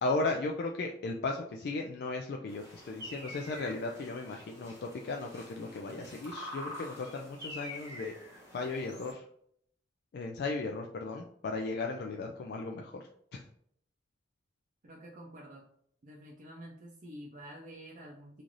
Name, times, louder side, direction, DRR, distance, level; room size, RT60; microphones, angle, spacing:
voice 1, 0.0-8.1 8.5-9.2 10.1-13.0 13.3-13.5, left 3 dB, 60° left, 2 dB, 0.3 m, -36 dB
sound 1, 2.5-9.1, left 1 dB, 15° right, 1.0 m, -46 dB
voice 2, 14.8-15.6 16.0-18.4, equal, 45° right, -2 dB, 0.5 m, -48 dB
3.1 x 2.5 x 3.8 m, 0.68 s
head